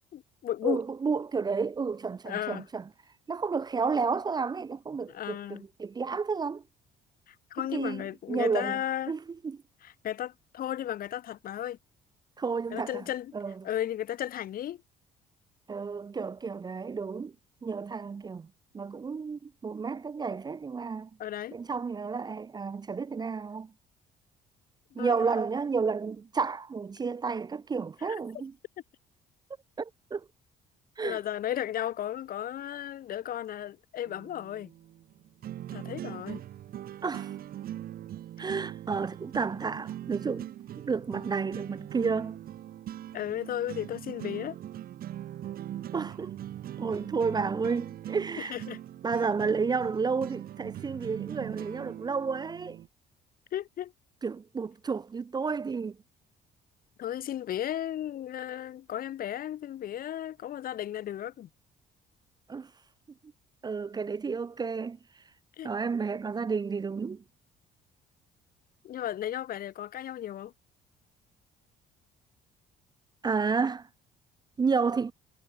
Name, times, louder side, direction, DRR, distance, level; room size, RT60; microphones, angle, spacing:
voice 1, 0.1-0.8 2.3-2.6 5.1-5.6 7.3-9.2 9.8-11.8 12.7-13.3 13.6-14.8 21.2-21.6 25.0-25.1 28.1-28.2 31.0-34.7 35.7-36.4 43.1-44.6 48.4-48.8 53.5-53.9 57.0-61.5 65.6-65.7 68.8-70.5, left 11 dB, 60° left, 2.0 m, -34 dB
voice 2, 0.6-2.8 3.3-6.6 7.7-8.8 9.1-9.6 12.4-13.0 13.3-13.7 15.7-17.3 17.6-18.5 18.7-21.1 21.5-23.7 24.9-28.5 29.8-30.3 31.0-31.2 37.0-37.3 38.4-42.4 45.9-46.4 46.8-48.6 49.0-52.8 54.2-56.0 62.5-62.7 63.6-65.0 65.6-67.2 73.2-73.9 74.6-75.1, right 5 dB, 25° right, 0.6 m, -31 dB
sound 1, 34.1-52.9, right 12 dB, 60° right, 3.5 m, -41 dB
cardioid pair, 110°, 17 cm